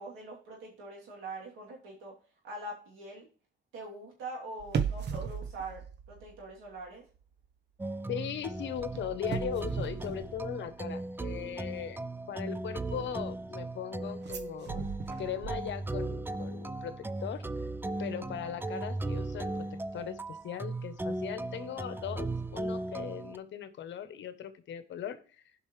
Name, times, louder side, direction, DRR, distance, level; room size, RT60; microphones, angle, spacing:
voice 1, 0.0-2.1 2.4-3.3 3.7-5.8 6.1-7.0, right 2 dB, 85° right, -2 dB, 3.1 m, -43 dB
sound 1, 4.6-6.9 7.2-7.5 8.8-11.0 14.2-16.1 16.4-16.5, right 6 dB, 60° right, 0.9 m, -37 dB
sound 2, 7.8-23.4, right 2 dB, 10° right, 0.4 m, -37 dB
voice 2, 8.1-12.0 12.3-14.9 15.2-17.4 18.0-19.7 19.9-25.4, left 9 dB, 70° left, 11 dB, 1.0 m, -39 dB
15.5 x 5.5 x 3.3 m, 0.39 s
cardioid pair, 90°, 20 cm